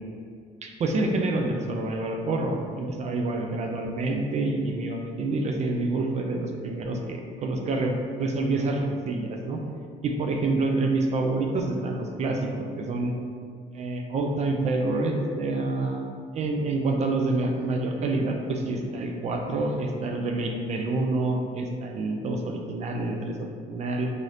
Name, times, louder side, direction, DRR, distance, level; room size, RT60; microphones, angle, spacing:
voice 1, 0.6-9.6 10.0-13.1 13.7-16.0 16.3-24.1, right 2 dB, 40° right, 2 dB, 0.4 m, -27 dB
2.7 x 2.5 x 3.2 m, 2.2 s
cardioid pair, 110°, 17 cm